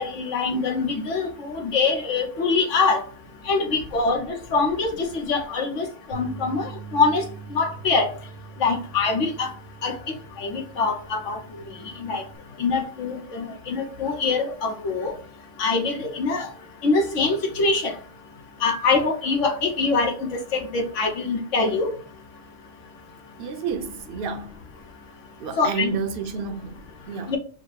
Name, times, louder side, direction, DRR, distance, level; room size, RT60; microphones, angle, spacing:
voice 1, 0.0-3.0 3.5-4.3 4.5-6.6 6.9-7.2 7.5-8.1 8.6-9.5 9.8-9.9 10.4-11.4 12.0-12.2 12.6-15.1 15.6-16.5 16.8-17.9 18.6-21.9 25.6-25.9 27.3-27.4, left 4 dB, 80° left, 1.3 m, -24 dB
voice 2, 3.4-3.8 4.5-4.6 4.9-5.0 23.4-24.6 25.4-27.4, right 5 dB, 55° right, 0.7 m, -31 dB
sound 1, 6.1-12.4, right 6 dB, 80° right, 1.0 m, -43 dB
4.8 x 2.0 x 4.6 m
omnidirectional pair, 1.3 m